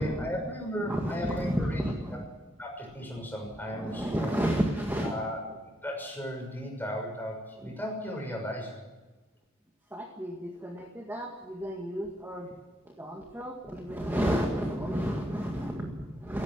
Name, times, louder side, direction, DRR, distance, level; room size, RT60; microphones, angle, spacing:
voice 1, 0.0-1.8 2.1-2.2 2.6-4.3 5.0-8.8, equal, 10° left, 0 dB, 6.2 m, -36 dB
voice 2, 0.8-2.3 3.7-5.1 7.6-7.7 9.9-12.5 12.9-16.4, equal, 10° right, 1 dB, 1.9 m, -31 dB
17.0 x 16.0 x 9.8 m, 1.1 s
head